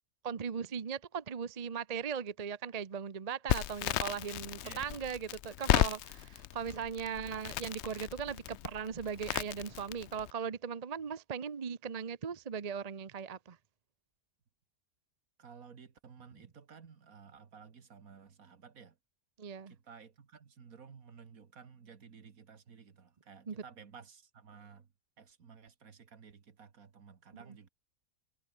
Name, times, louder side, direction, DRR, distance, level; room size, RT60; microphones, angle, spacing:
voice 1, 0.2-13.6 19.4-19.7 23.5-23.6 27.3-27.4, right 7 dB, 35° right, 0.8 m, -38 dB
Crackle, 3.5-10.3, left 13 dB, 65° left, 0.7 m, -34 dB
voice 2, 15.4-19.0 19.7-24.9 25.2-27.7, right 6 dB, 65° right, 2.1 m, -54 dB
omnidirectional pair, 1.6 m